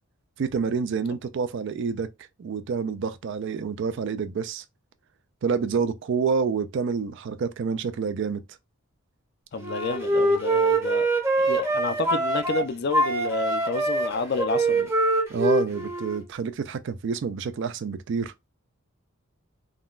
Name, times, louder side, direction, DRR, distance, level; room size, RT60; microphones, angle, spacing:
voice 1, 0.4-2.1 2.4-4.6 5.4-8.4 15.3-18.3, right 5 dB, 55° right, 0.3 m, -28 dB
voice 2, 9.5-11.1 11.4-14.9, left 3 dB, 50° left, 0.4 m, -30 dB
Wind instrument woodwind instrument, 9.6-12.6 12.9-16.2, right 2 dB, 10° right, 0.7 m, -24 dB
3.7 x 2.2 x 2.4 m
head